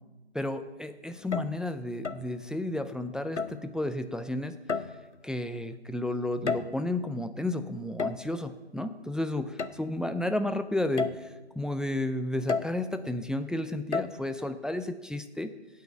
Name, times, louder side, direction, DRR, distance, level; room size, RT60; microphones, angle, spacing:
voice 1, 0.3-4.6 5.2-15.5, left 1 dB, ahead, 9 dB, 0.3 m, -32 dB
sound 1, 1.2-1.6 2.0-2.3 3.4-3.7 4.7-5.2 6.2-7.0 8.0-8.3 9.6-9.8 10.3-10.4 11.0-11.3 12.5-12.8 13.9-14.1, left 4 dB, 90° left, 0.7 m, -32 dB
9.0 x 5.1 x 7.5 m, 1.1 s
figure-of-eight pair, 175°, 34 cm